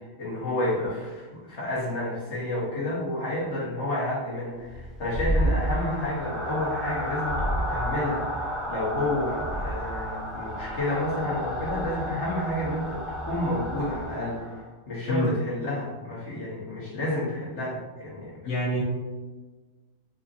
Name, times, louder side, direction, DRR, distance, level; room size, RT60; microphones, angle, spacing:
voice 1, 0.2-8.4 8.7-14.5 14.9-18.3, left 1 dB, 60° left, -7 dB, 1.5 m, -30 dB
sound 1, 4.7-14.7, equal, ahead, 0.4 m, -31 dB
voice 2, 18.4-18.8, left 1 dB, 90° left, -3 dB, 1.1 m, -26 dB
4.5 x 2.7 x 2.6 m, 1.3 s
omnidirectional pair, 1.4 m